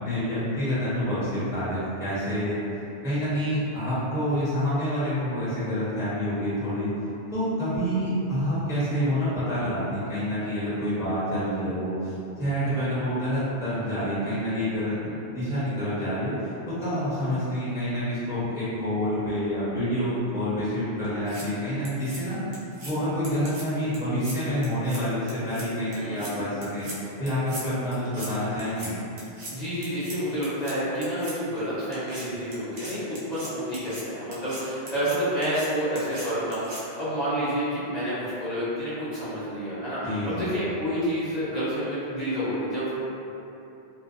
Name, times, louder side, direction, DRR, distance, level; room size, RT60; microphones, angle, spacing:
voice 1, 0.0-2.6 3.0-6.9 7.3-16.3 16.7-22.4 22.8-26.9 27.2-28.9 40.0-40.5, equal, 5° right, -13 dB, 0.6 m, -27 dB
sound 1, 21.0-21.4 21.8-22.2 22.5-22.9 23.2-23.6 23.9-24.4 24.6-25.0 25.3-25.6 25.9-26.3 26.6-27.0 27.3-27.6 27.9-28.3 28.6-28.9 29.2-29.5 29.8-30.2 30.4-30.7 31.0-31.3 31.9-32.2 32.5-34.0 34.3-34.6 34.9-35.2 35.4-35.7 36.0-36.3 36.5-36.8, right 1 dB, 80° right, 0.9 m, -39 dB
voice 2, 25.9-26.4 29.5-33.0 33.3-43.0, equal, 45° left, -12 dB, 0.8 m, -29 dB
2.5 x 2.1 x 2.4 m, 2.9 s
omnidirectional pair, 1.1 m